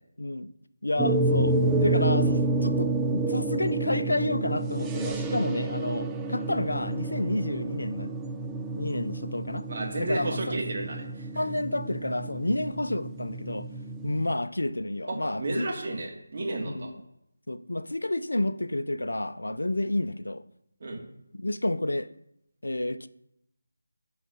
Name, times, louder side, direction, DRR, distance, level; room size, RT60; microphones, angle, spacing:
voice 1, 0.2-0.5 0.8-8.2 8.7-9.7 10.0-10.6 11.3-13.7 14.0-15.7 16.6-16.9 17.5-20.4 21.3-22.1 22.6-23.1, left 1 dB, 80° left, 0.5 m, -30 dB
sound 1, 1.0-14.3, right 2 dB, 10° right, 0.4 m, -29 dB
voice 2, 9.7-11.3 15.1-16.9 20.8-21.1, right 2 dB, 40° right, 2.0 m, -32 dB
9.3 x 3.9 x 6.9 m
figure-of-eight pair, 160°, 0 cm